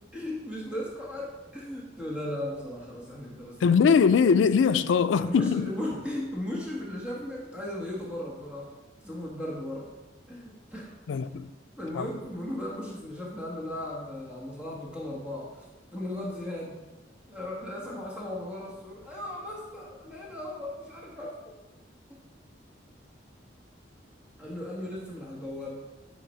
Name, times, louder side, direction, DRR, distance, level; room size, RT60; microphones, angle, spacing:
voice 1, 0.1-3.6 5.2-8.7 9.0-9.9 10.3-10.9 11.2-11.4 11.8-15.7 15.9-16.8 17.3-21.5 22.1-22.2 24.4-25.7, left 1 dB, 5° right, 1.5 m, -36 dB
voice 2, 3.6-5.7 11.1-11.5 11.9-12.1, left 6 dB, 85° left, 0.4 m, -21 dB
9.4 x 3.9 x 5.6 m
head